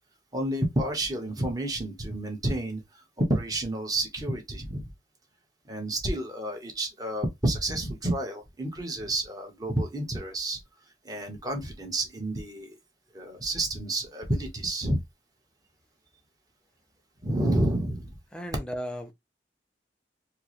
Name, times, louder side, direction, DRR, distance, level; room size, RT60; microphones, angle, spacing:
voice 1, 0.3-2.8 3.3-4.9 5.7-10.6 11.0-12.7 13.1-15.0 17.2-18.1, right 1 dB, 20° right, 1.0 m, -30 dB
voice 2, 18.3-19.1, equal, 5° left, 0.5 m, -35 dB
4.5 x 2.1 x 3.0 m
head